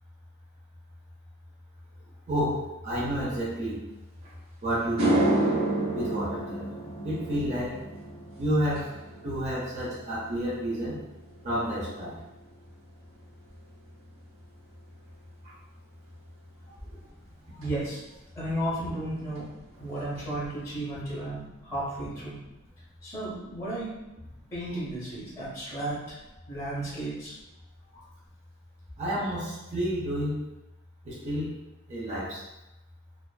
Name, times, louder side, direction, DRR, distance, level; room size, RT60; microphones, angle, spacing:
voice 1, 2.3-3.8 4.6-5.3 5.9-6.7 7.0-7.8 8.4-9.0 9.2-11.0 11.4-12.2 29.0-30.4 31.0-31.6 31.9-32.4, equal, 35° right, -7 dB, 0.6 m, -30 dB
sound 1, 4.3-4.4 4.8-13.3 13.6-14.0 17.6-17.7 19.4-19.5 19.7-19.9 20.1-20.7, right 1 dB, 70° right, 0.8 m, -31 dB
voice 2, 17.5-18.0 18.4-19.4 19.8-22.4 23.0-23.9 24.2-26.2 26.5-27.3 27.9-28.0, right 1 dB, 15° left, -8 dB, 0.6 m, -34 dB
2.4 x 2.4 x 2.2 m, 0.95 s
head